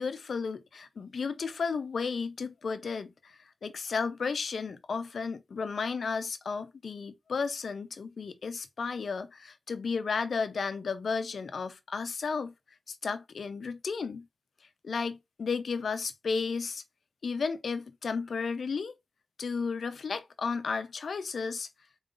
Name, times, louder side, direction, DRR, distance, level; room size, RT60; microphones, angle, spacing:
voice 1, 0.0-12.5 12.9-14.3 14.8-16.8 17.2-18.9 19.4-21.7, left 5 dB, 75° left, 0.5 m, -33 dB
3.8 x 3.8 x 2.4 m
wide cardioid pair, 85°, 0 cm